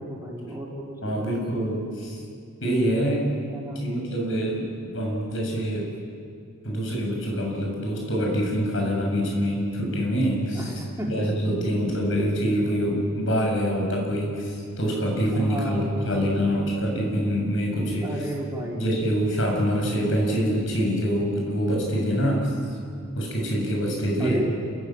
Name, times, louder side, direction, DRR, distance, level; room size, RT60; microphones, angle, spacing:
voice 1, 0.0-1.3 3.5-3.8 10.6-11.2 15.4-16.5 18.0-19.0 24.2-24.5, equal, 15° right, -4 dB, 5.2 m, -33 dB
voice 2, 1.0-2.2 2.6-3.3 3.8-5.9 6.6-10.7 11.1-18.2 18.7-22.5 23.1-24.4, equal, 65° left, 0 dB, 7.7 m, -25 dB
29.5 x 15.5 x 9.2 m, 2.3 s
head